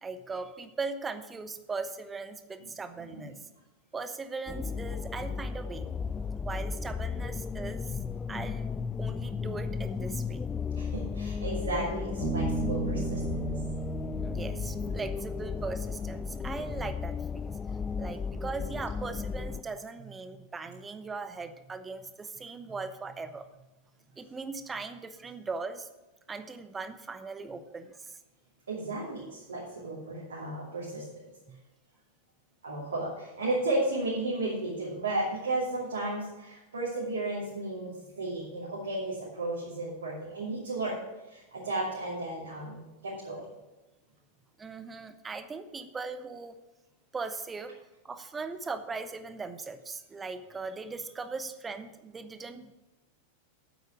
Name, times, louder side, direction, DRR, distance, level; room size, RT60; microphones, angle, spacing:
voice 1, 0.0-3.4 3.9-5.9 6.4-8.0 8.3-8.7 9.0-10.4 14.2-17.6 18.0-23.6 24.2-25.9 26.3-28.2 31.5-31.6 44.6-46.5 47.1-47.7 48.0-52.7, right 4 dB, 15° right, 10 dB, 0.9 m, -39 dB
sound 1, 4.5-19.6, left 5 dB, 20° left, 0.3 m, -34 dB
voice 2, 10.7-13.5 28.7-31.0 32.6-41.0 41.3-43.4, right 2 dB, 70° right, -6 dB, 2.7 m, -34 dB
Bass guitar, 12.2-15.7, right 4 dB, 65° left, 4.7 m, -35 dB
9.2 x 8.1 x 6.3 m, 1.1 s
figure-of-eight pair, 90°, 0 cm